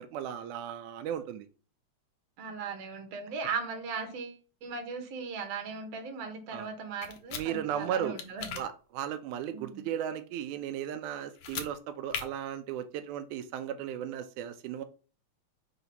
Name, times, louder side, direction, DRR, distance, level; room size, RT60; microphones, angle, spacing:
voice 1, 0.0-1.5 6.5-6.7 7.4-8.2 8.6-14.8, right 9 dB, 90° right, 9 dB, 2.0 m, -36 dB
voice 2, 2.4-8.6 9.5-9.9, right 5 dB, 60° right, 5 dB, 2.3 m, -38 dB
sound 1, 7.0-7.4 8.2-8.6 11.3-11.7 12.1-12.2, left 7 dB, 65° left, 1.7 m, -37 dB
5.1 x 4.0 x 5.7 m, 0.37 s
omnidirectional pair, 3.4 m